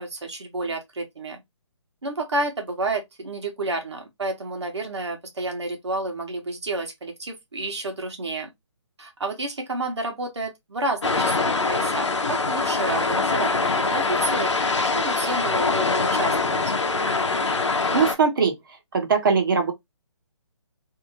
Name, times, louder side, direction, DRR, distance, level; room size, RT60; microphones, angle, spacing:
voice 1, 0.0-1.4 2.0-8.5 9.0-13.5 13.9-14.5 14.9-16.6, right 2 dB, 65° right, 1.1 m, -30 dB
sound 1, 11.0-18.1, left 3 dB, 70° left, 0.7 m, -23 dB
voice 2, 17.9-18.5 18.9-19.7, right 5 dB, 45° right, 0.9 m, -20 dB
2.8 x 2.5 x 2.8 m
figure-of-eight pair, 145°, 15 cm